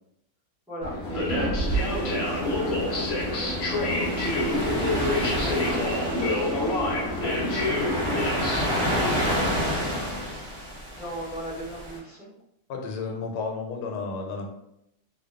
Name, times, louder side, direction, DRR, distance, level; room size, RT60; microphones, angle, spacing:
voice 1, 0.7-3.2 4.6-9.7 10.9-12.3, equal, 5° right, -14 dB, 0.5 m, -39 dB
sound 1, 0.8-9.5, left 1 dB, 60° left, 0.6 m, -27 dB
sound 2, 1.7-12.0, equal, 50° right, 0.8 m, -31 dB
voice 2, 12.7-14.5, left 4 dB, 90° left, 2 dB, 1.2 m, -32 dB
2.8 x 2.2 x 2.4 m, 0.81 s
omnidirectional pair, 1.8 m